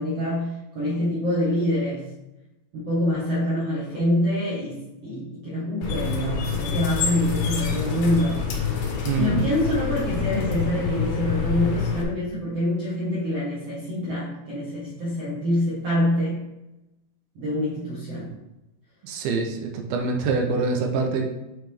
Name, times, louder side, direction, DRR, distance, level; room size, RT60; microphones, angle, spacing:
voice 1, 0.0-2.1 2.7-8.4 9.1-16.5 17.3-18.4, equal, 60° right, -9 dB, 1.6 m, -26 dB
sound 1, 5.8-12.0, left 6 dB, 75° left, 3.0 m, -27 dB
voice 2, 9.1-9.4 19.0-21.2, right 4 dB, 80° right, 3 dB, 2.3 m, -25 dB
9.0 x 4.0 x 3.4 m, 0.95 s
omnidirectional pair, 5.0 m